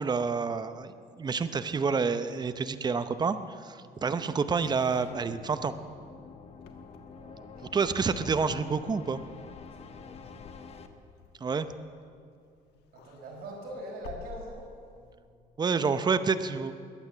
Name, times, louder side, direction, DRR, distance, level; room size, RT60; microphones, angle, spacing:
voice 1, 0.0-5.7 7.7-9.2 11.4-11.7 15.6-16.7, right 5 dB, 25° right, 11 dB, 0.7 m, -28 dB
sound 1, 4.6-10.9, left 5 dB, 35° left, 1.1 m, -48 dB
Wind / Car, 6.5-12.4 12.7-15.1, left 5 dB, 80° left, 1.4 m, -50 dB
voice 2, 7.1-7.7 9.8-10.4 12.9-15.3, right 1 dB, 65° right, -2 dB, 4.8 m, -44 dB
22.0 x 8.9 x 7.2 m, 2.3 s
cardioid pair, 110°, 17 cm